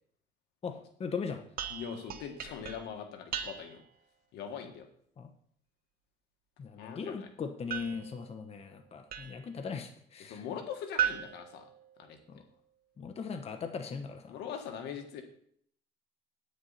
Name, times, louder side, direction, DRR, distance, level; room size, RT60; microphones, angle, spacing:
voice 1, 0.6-1.5 5.2-5.3 6.6-10.5 12.3-12.4 13.0-14.3, left 5 dB, 35° left, 6 dB, 1.1 m, -39 dB
sound 1, 1.6-4.0 7.7-9.6 11.0-12.4, right 9 dB, 60° right, 1.1 m, -38 dB
voice 2, 1.7-3.8 4.3-4.9 6.8-7.3 10.2-11.7 12.0-12.2 14.3-15.2, left 7 dB, 80° left, 5 dB, 1.8 m, -41 dB
9.6 x 9.3 x 4.2 m, 0.63 s
cardioid pair, 110°, 17 cm